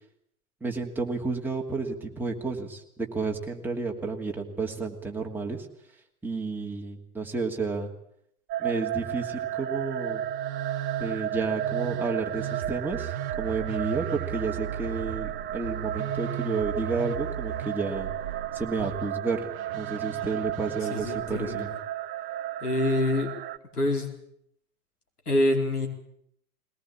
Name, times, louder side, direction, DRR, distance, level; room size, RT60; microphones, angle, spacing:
voice 1, 0.6-2.8 3.1-5.7 6.2-7.9 8.6-10.2 11.0-18.1 18.5-19.5 19.7-21.7, right 4 dB, 5° right, 0 dB, 2.7 m, -31 dB
sound 1, 8.5-23.6, right 11 dB, 20° right, 0.9 m, -34 dB
Musical instrument, 10.0-21.8, right 10 dB, 65° right, 1.0 m, -37 dB
voice 2, 20.9-21.7 22.6-23.3 23.7-24.1 25.3-25.9, left 1 dB, 80° left, 3 dB, 4.7 m, -26 dB
20.5 x 19.0 x 8.8 m, 0.71 s
figure-of-eight pair, 105°, 45 cm